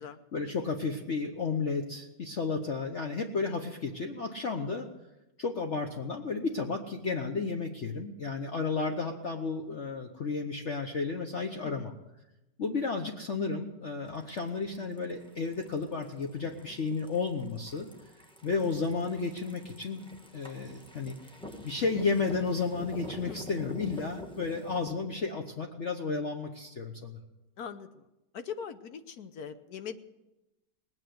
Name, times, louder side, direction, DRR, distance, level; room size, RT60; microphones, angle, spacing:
voice 1, 0.3-4.9 5.4-11.9 12.6-17.9 18.4-21.2 21.6-27.2, left 4 dB, 45° left, 3 dB, 1.2 m, -32 dB
sound 1, 14.1-24.9, left 1 dB, 5° left, 1.1 m, -47 dB
voice 2, 27.6-28.1 28.3-30.0, left 7 dB, 65° left, 10 dB, 1.2 m, -41 dB
19.5 x 9.6 x 7.7 m, 0.97 s
omnidirectional pair, 1.9 m